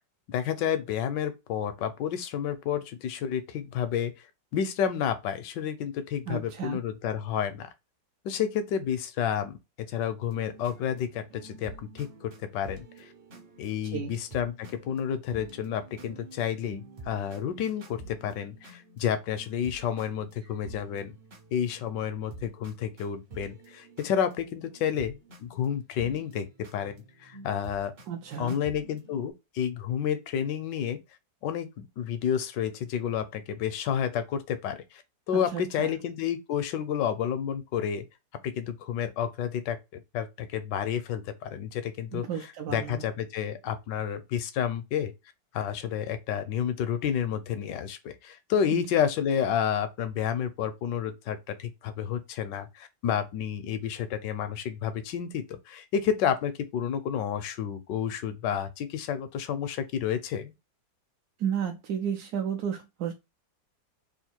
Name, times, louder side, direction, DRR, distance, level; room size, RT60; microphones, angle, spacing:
voice 1, 0.3-4.1 4.5-7.7 8.2-13.1 13.6-21.1 21.5-27.9 28.4-31.0 31.4-35.0 35.3-38.0 38.4-42.2 42.7-45.1 45.5-60.5, left 8 dB, 80° left, 1.3 m, -30 dB
voice 2, 6.3-6.8 13.9-14.2 28.1-28.6 35.3-36.0 42.1-43.0 48.7-48.8 61.4-63.1, right 8 dB, 70° right, 1.0 m, -33 dB
sound 1, 10.3-29.3, right 3 dB, 45° right, 0.7 m, -49 dB
3.5 x 2.5 x 4.3 m
omnidirectional pair, 1.9 m